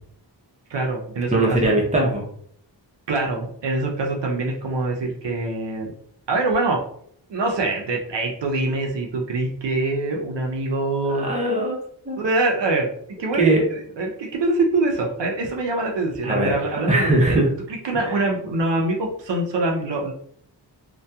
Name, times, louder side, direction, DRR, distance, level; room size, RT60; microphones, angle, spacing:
voice 1, 0.7-1.8 3.1-5.9 6.3-6.8 7.3-11.3 12.2-12.9 13.2-17.1 17.8-20.1, right 2 dB, 75° right, 0 dB, 0.6 m, -24 dB
voice 2, 1.3-2.2 11.1-11.8 12.1-12.2 13.4-13.6 16.2-17.5 17.9-18.2, right 1 dB, 15° right, -1 dB, 0.6 m, -21 dB
2.7 x 2.2 x 2.2 m, 0.64 s
wide cardioid pair, 95°, 44 cm